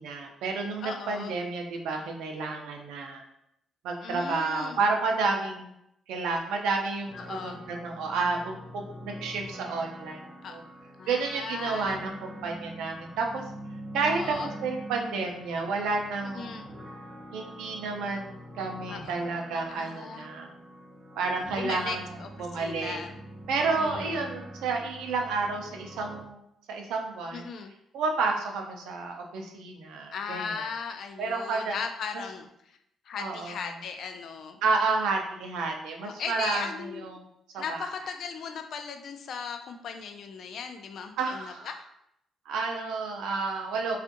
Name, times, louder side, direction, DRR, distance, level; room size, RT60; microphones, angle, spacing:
voice 1, 0.0-3.2 3.8-5.7 6.1-10.2 10.5-10.6 11.1-13.4 13.9-14.4 14.6-16.6 17.3-20.5 21.2-22.1 22.4-23.0 23.5-26.4 26.7-27.4 27.9-30.4 31.2-31.8 33.2-33.6 34.6-37.1 37.5-37.9 41.2-41.7 42.5-44.0, right 4 dB, 90° right, 2 dB, 0.4 m, -30 dB
voice 2, 0.8-1.3 4.0-4.8 7.1-7.6 10.4-10.6 11.0-12.0 14.0-14.5 16.3-16.6 18.9-19.1 19.7-20.3 21.6-23.1 23.8-24.2 27.3-27.7 30.1-32.8 33.1-34.6 36.0-37.1 37.6-41.9, left 6 dB, 65° left, 6 dB, 0.3 m, -37 dB
sound 1, 7.0-26.2, equal, 30° right, 0.7 m, -44 dB
2.6 x 2.4 x 2.5 m, 0.77 s
cardioid pair, 90°, 0 cm